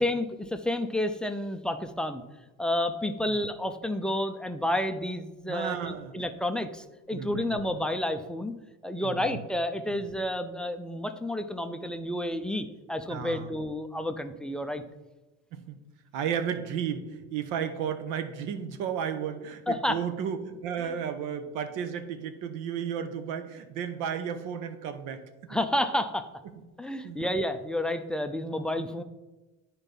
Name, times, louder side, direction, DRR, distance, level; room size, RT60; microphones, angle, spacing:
voice 1, 0.0-2.2 2.6-8.5 8.8-14.8 19.7-20.0 25.5-26.3 26.8-29.0, left 1 dB, 5° left, 7 dB, 0.3 m, -30 dB
voice 2, 5.5-6.1 7.1-7.6 9.0-9.4 9.9-10.0 13.1-13.5 15.5-15.8 16.1-25.6 26.4-26.5 27.0-27.3, right 8 dB, 80° right, 10 dB, 1.0 m, -33 dB
9.9 x 4.5 x 5.3 m, 1.1 s
cardioid pair, 145°, 31 cm